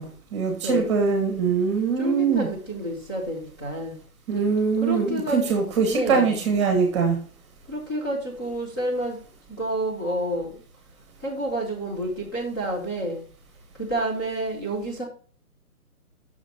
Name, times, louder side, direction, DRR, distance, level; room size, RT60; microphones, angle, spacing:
voice 1, 0.0-2.5 4.3-7.2, right 5 dB, 20° right, 1.2 m, -23 dB
voice 2, 2.0-4.0 4.8-5.4 5.9-6.4 7.7-9.2 9.5-10.5 11.2-13.2 13.8-15.0, right 1 dB, 15° left, 0.9 m, -29 dB
6.2 x 5.0 x 5.8 m
hypercardioid pair, 165°, 44 cm